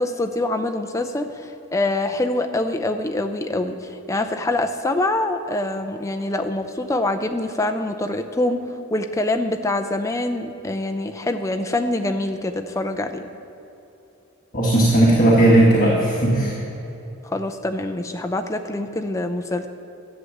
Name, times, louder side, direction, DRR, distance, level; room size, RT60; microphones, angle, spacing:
voice 1, 0.0-8.6 8.9-13.3 17.2-19.7, left 2 dB, 15° left, 5 dB, 0.5 m, -25 dB
voice 2, 14.5-16.5, right 1 dB, 40° left, -5 dB, 1.6 m, -16 dB
11.0 x 7.8 x 7.2 m, 2.9 s
head